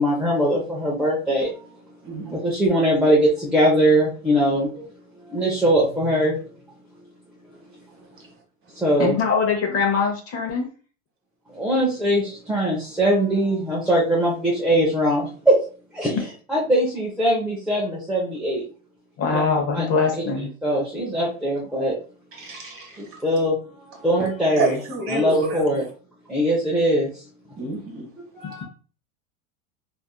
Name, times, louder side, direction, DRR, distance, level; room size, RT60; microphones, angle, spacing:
voice 1, 0.0-1.6 2.3-4.9 5.3-6.4 8.7-9.2 11.5-15.6 15.9-16.2 16.5-18.6 19.3-19.4 19.7-19.9 20.4-22.0 23.0-23.6 23.9-24.8 25.1-25.8 26.3-27.1 28.3-28.7, equal, ahead, 0.5 m, -21 dB
voice 2, 2.0-2.4 22.4-23.0 24.6-25.6 27.6-28.1, right 2 dB, 30° right, 1.2 m, -28 dB
voice 3, 9.0-10.7 19.2-20.5, left 5 dB, 35° left, 0.8 m, -22 dB
3.3 x 2.6 x 2.3 m
supercardioid pair, 125°, 41 cm